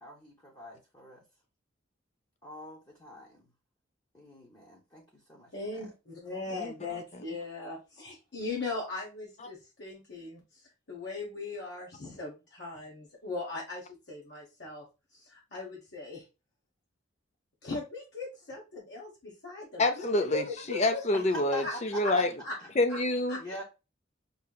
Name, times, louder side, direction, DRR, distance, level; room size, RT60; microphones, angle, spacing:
voice 1, 0.0-1.2 2.4-3.4 4.1-5.9 21.3-22.3 22.6-22.7 23.4-23.6, left 1 dB, 20° left, 0.9 m, -44 dB
voice 2, 5.5-10.4 10.9-14.9 15.1-16.2 17.6-21.0 21.6-21.7 22.0-22.1 22.4-22.6 22.9-23.0 23.3-23.4, left 3 dB, 60° left, 1.2 m, -39 dB
voice 3, 6.5-7.0 19.8-22.3 22.8-23.4, left 2 dB, 35° left, 0.6 m, -28 dB
5.4 x 2.8 x 2.3 m
head